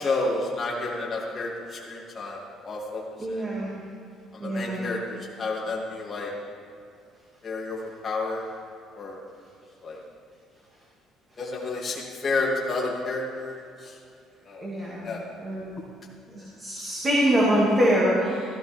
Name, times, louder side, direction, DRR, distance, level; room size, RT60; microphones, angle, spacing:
voice 1, 0.0-3.0 3.3-3.4 4.3-6.3 7.4-8.5 8.9-9.2 9.8-10.0 11.4-14.0 14.4-14.7 15.0-15.2, left 3 dB, 25° left, -4 dB, 2.8 m, -30 dB
voice 2, 3.2-3.7 4.4-4.8 14.6-15.1 15.4-15.7 16.3-18.5, equal, 20° right, -6 dB, 2.4 m, -24 dB
16.0 x 14.0 x 3.6 m, 2.5 s
cardioid pair, 155°, 0 cm